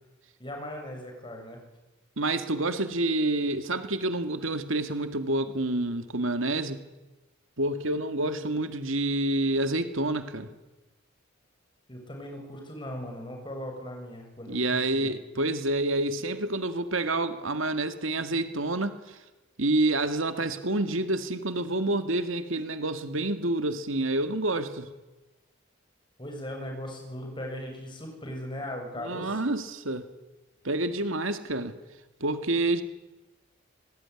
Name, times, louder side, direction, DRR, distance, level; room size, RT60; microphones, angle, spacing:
voice 1, 0.4-1.6 11.9-15.1 26.2-29.4, left 1 dB, 25° left, 2 dB, 7.4 m, -38 dB
voice 2, 2.2-6.8 7.6-10.5 14.5-19.2 19.6-24.9 29.0-30.1 30.6-31.7 32.2-32.8, right 2 dB, 75° right, 8 dB, 2.1 m, -28 dB
25.5 x 20.0 x 9.9 m, 1.1 s
head